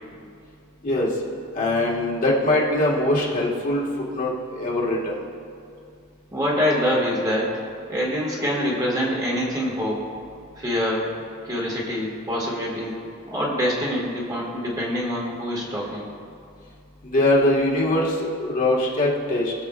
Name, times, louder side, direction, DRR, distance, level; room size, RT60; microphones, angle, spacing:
voice 1, 1.5-3.8 4.1-5.2 17.1-19.5, left 1 dB, 40° left, -4 dB, 1.7 m, -22 dB
voice 2, 6.3-7.6 7.9-10.0 10.5-11.1 11.4-12.9 13.3-16.1, equal, 15° right, -4 dB, 1.8 m, -25 dB
21.5 x 7.3 x 2.4 m, 2.5 s
head